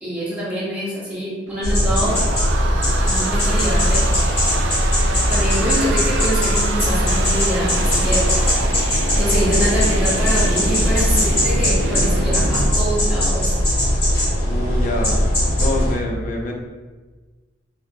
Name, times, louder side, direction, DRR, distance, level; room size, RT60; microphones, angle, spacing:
voice 1, 0.0-2.3 3.0-4.1 5.1-8.3 9.2-13.5, equal, 10° right, -8 dB, 0.8 m, -25 dB
sound 1, 1.5-12.7, right 3 dB, 80° right, 0.3 m, -28 dB
sound 2, 1.6-16.0, equal, 30° left, 1.2 m, -19 dB
voice 2, 14.4-15.3 15.6-16.5, left 1 dB, 45° left, 0 dB, 0.4 m, -26 dB
2.7 x 2.6 x 2.5 m, 1.3 s
head